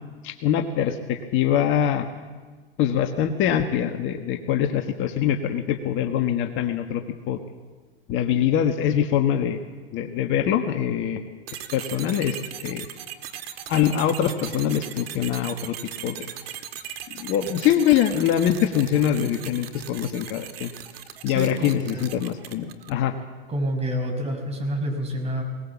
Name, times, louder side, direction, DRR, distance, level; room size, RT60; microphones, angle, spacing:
voice 1, 0.2-2.1 2.8-7.4 8.1-9.6 9.9-11.2 11.7-12.9 13.7-15.8 16.0-16.3 17.1-20.7 21.2-23.1, left 9 dB, 40° left, 6 dB, 1.5 m, -23 dB
sound 1, 11.5-23.1, right 10 dB, 70° right, 1.8 m, -38 dB
voice 2, 21.3-22.1 23.5-25.4, equal, 20° right, 3 dB, 5.7 m, -28 dB
21.0 x 19.5 x 7.3 m, 1.4 s
hypercardioid pair, 105°, 31 cm